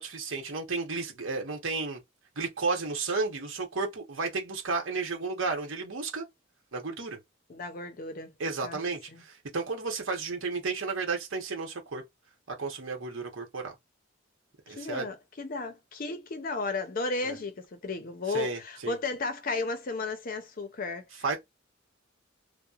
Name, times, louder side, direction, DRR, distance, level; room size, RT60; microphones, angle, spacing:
voice 1, 0.0-2.0 2.4-6.3 6.7-7.2 8.4-12.0 12.6-13.7 14.7-15.1 17.2-17.4 18.3-19.0 21.2-21.4, right 4 dB, 80° right, 0.9 m, -32 dB
voice 2, 7.5-8.3 8.6-8.8 9.1-9.2 14.7-21.4, left 3 dB, 45° left, 0.5 m, -34 dB
2.8 x 2.1 x 2.4 m
head